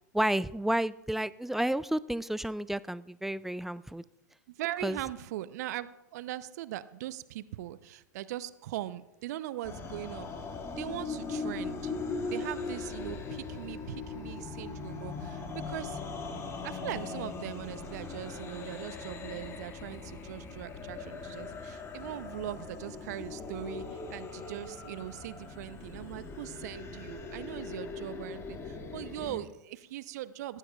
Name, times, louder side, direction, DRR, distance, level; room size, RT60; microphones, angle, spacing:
voice 1, 0.1-4.0 4.8-5.0, right 1 dB, 5° right, 19 dB, 0.3 m, -31 dB
voice 2, 4.5-10.3 10.8-11.9 12.3-16.0 16.6-30.6, right 14 dB, 60° right, 16 dB, 0.6 m, -40 dB
sound 1, 9.6-29.4, left 4 dB, 30° left, 2.0 m, -40 dB
18.5 x 14.5 x 2.3 m, 0.93 s
hypercardioid pair, 95°, 10 cm